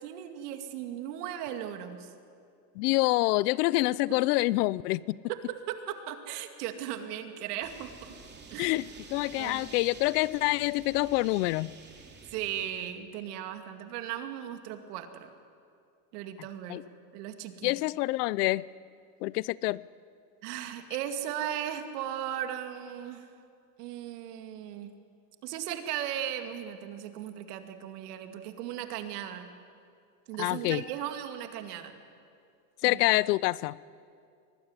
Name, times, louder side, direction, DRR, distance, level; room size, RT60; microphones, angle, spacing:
voice 1, 0.0-2.1 5.3-8.1 8.5-8.7 9.4-9.8 12.3-15.3 16.1-17.7 20.4-23.3 23.8-24.9 25.4-29.5 30.3-31.9 32.8-33.2, right 10 dB, 80° right, 7 dB, 2.5 m, -37 dB
voice 2, 2.8-5.2 8.6-11.7 16.7-16.8 17.6-18.7 19.2-19.8 30.4-30.8 32.8-33.8, left 20 dB, 80° left, 22 dB, 0.7 m, -27 dB
sound 1, 7.6-12.7, right 4 dB, 20° right, 3.1 m, -49 dB
23.5 x 19.5 x 9.7 m, 2.4 s
supercardioid pair, 125°, 46 cm